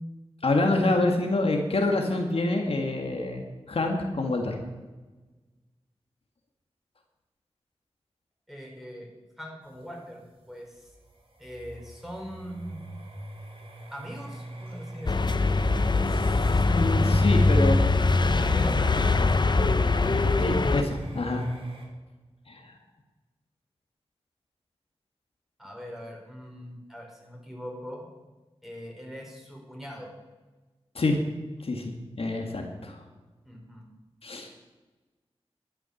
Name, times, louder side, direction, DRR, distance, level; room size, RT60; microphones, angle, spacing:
voice 1, 0.4-4.6 16.7-17.9 20.4-21.5 22.5-22.7 31.0-31.2 31.6-31.9 32.2-33.0 34.2-34.5, left 2 dB, 65° left, 2 dB, 1.9 m, -26 dB
voice 2, 8.5-9.1 9.4-10.9 11.4-12.9 13.9-15.1 18.3-20.3 25.6-28.0 28.6-30.1 33.4-33.8, equal, ahead, -1 dB, 4.7 m, -41 dB
sound 1, 9.6-21.9, right 1 dB, 60° right, 3.5 m, -41 dB
sound 2, 15.1-20.8, left 3 dB, 45° left, 0.8 m, -22 dB
12.0 x 10.0 x 7.2 m, 1.2 s
wide cardioid pair, 60°, 10 cm